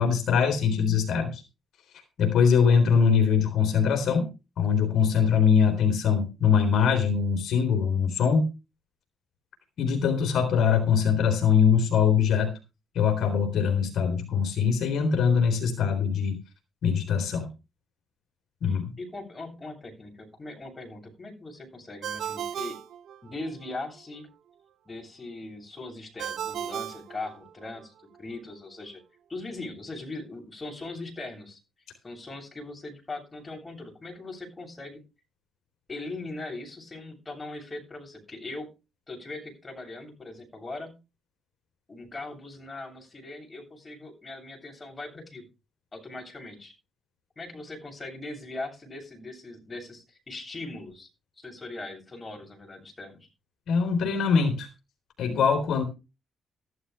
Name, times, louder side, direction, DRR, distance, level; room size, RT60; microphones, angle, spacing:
voice 1, 0.0-1.4 2.2-4.2 4.6-8.5 9.8-12.5 12.9-16.4 16.8-17.5 18.6-18.9 53.7-54.7 55.2-55.8, left 6 dB, 70° left, 4 dB, 3.8 m, -22 dB
voice 2, 18.7-22.8 23.2-24.3 24.8-29.0 29.3-31.6 32.0-35.0 35.9-38.7 39.1-40.9 41.9-45.4 45.9-46.7 47.4-51.1 51.4-53.3, left 2 dB, 25° left, 1 dB, 7.9 m, -40 dB
Ringtone, 22.0-23.7 26.2-27.9, right 9 dB, 70° right, 1.5 m, -36 dB
14.5 x 12.5 x 3.4 m, 0.29 s
cardioid pair, 90°, 0 cm